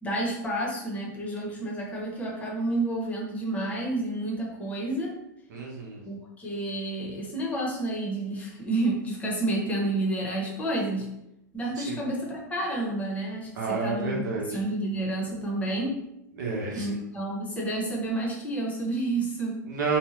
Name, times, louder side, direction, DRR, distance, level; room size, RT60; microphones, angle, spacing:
voice 1, 0.0-5.1 6.0-11.1 11.5-14.2 14.5-15.9 16.7-19.6, right 2 dB, 15° left, -2 dB, 0.8 m, -30 dB
voice 2, 5.5-6.0 11.8-12.0 13.6-14.5 16.4-17.0 19.6-20.0, right 4 dB, 75° right, -2 dB, 0.9 m, -30 dB
2.7 x 2.1 x 3.0 m, 0.85 s
hypercardioid pair, 120°, 10 cm